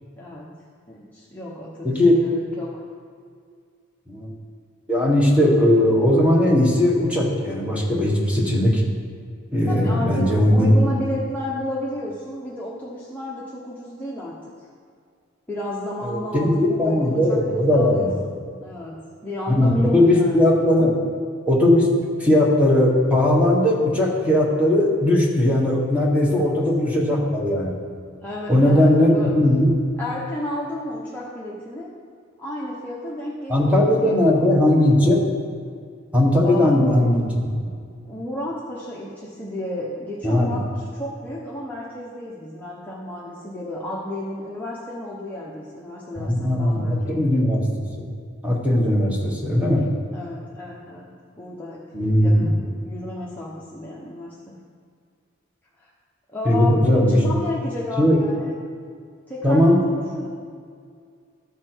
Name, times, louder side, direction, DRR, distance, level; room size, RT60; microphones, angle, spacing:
voice 1, 0.2-0.5 0.9-2.8 9.7-14.7 15.5-20.6 26.3-26.6 28.2-29.3 30.0-31.9 32.4-35.1 36.4-37.0 38.0-47.2 49.2-49.4 50.1-51.9 52.1-54.6 55.8-55.9 56.3-58.6 59.3-60.3, left 1 dB, 10° left, -7 dB, 1.0 m, -32 dB
voice 2, 1.8-2.2 4.1-4.3 4.9-8.8 9.5-10.7 16.0-18.2 19.5-20.9 21.5-21.9 22.2-27.7 28.5-29.7 33.5-35.3 36.1-37.6 40.2-40.6 46.2-48.1 48.4-49.9 51.9-52.5 56.4-57.2 58.0-58.2 59.4-59.8, left 1 dB, 5° right, -3 dB, 1.5 m, -18 dB
13.5 x 6.0 x 4.6 m, 2.2 s
head